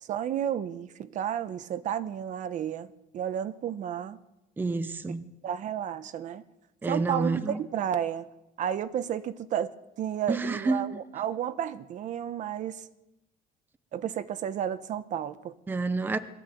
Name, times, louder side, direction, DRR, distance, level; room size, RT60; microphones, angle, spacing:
voice 1, 0.0-4.2 5.4-6.4 6.9-8.3 8.6-12.9 13.9-15.5, right 9 dB, 45° right, 1.0 m, -32 dB
voice 2, 4.6-5.2 6.8-7.6 10.3-11.0 15.7-16.2, right 3 dB, 10° right, 0.7 m, -29 dB
22.0 x 15.0 x 9.2 m
cardioid pair, 175°, 17 cm